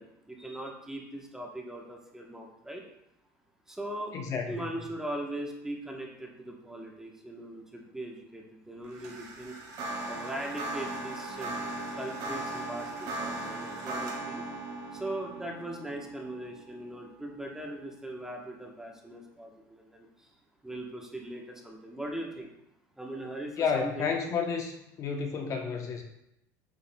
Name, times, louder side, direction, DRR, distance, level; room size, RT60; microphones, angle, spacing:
voice 1, 0.0-2.8 3.7-4.2 4.5-9.6 10.1-11.6 11.9-14.4 14.9-20.3 20.6-22.5 23.0-24.1, right 1 dB, 5° right, 0 dB, 1.0 m, -40 dB
voice 2, 4.1-4.7 23.6-24.7 25.0-26.0, left 6 dB, 40° left, 3 dB, 0.8 m, -31 dB
sound 1, 8.9-18.2, right 2 dB, 50° right, 2.2 m, -38 dB
8.2 x 5.7 x 2.2 m, 0.81 s
supercardioid pair, 130°, 9 cm